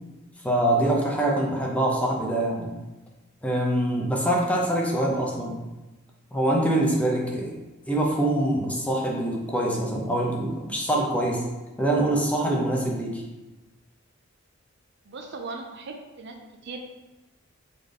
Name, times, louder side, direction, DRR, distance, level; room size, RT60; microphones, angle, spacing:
voice 1, 0.4-2.7 3.4-5.6 6.3-7.5 7.9-11.5 11.8-13.2, right 1 dB, 5° left, -2 dB, 0.7 m, -24 dB
voice 2, 15.0-16.4 16.6-16.8, right 3 dB, 60° right, 4 dB, 0.5 m, -38 dB
4.1 x 3.8 x 3.4 m, 1.1 s
head